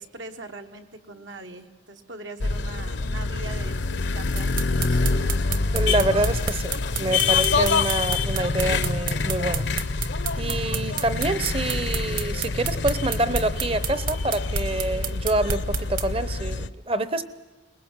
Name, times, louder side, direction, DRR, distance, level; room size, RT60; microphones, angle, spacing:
voice 1, 0.0-5.4, right 2 dB, 75° right, 5 dB, 1.4 m, -41 dB
sound 1, 2.4-16.7, left 4 dB, 65° left, 0.7 m, -26 dB
sound 2, 4.4-16.1, right 6 dB, 45° right, 1.2 m, -29 dB
voice 2, 5.7-9.6 10.3-17.2, right 2 dB, 30° right, 12 dB, 0.8 m, -26 dB
22.5 x 20.5 x 7.4 m, 1.2 s
head